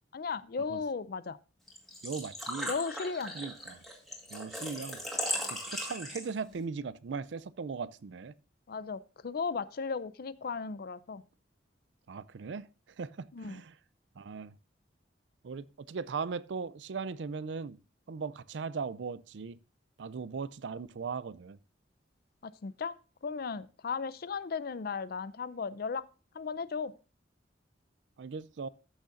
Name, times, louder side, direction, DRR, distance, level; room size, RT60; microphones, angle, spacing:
voice 1, 0.1-1.4 2.7-3.4 8.7-11.2 13.3-13.6 22.4-26.0 26.3-26.9, left 5 dB, 55° left, 0.5 m, -36 dB
Engine / Trickle dribble / Fill (with liquid), 1.7-6.5, equal, ahead, 2.2 m, -38 dB
voice 2, 2.0-2.7 3.3-3.8 4.3-5.0 5.5-8.3 12.1-12.7 13.0-13.7 14.2-14.5 15.4-17.8 18.1-19.6 20.0-21.6 28.2-28.7, right 5 dB, 75° right, 0.4 m, -38 dB
14.0 x 6.4 x 2.5 m
head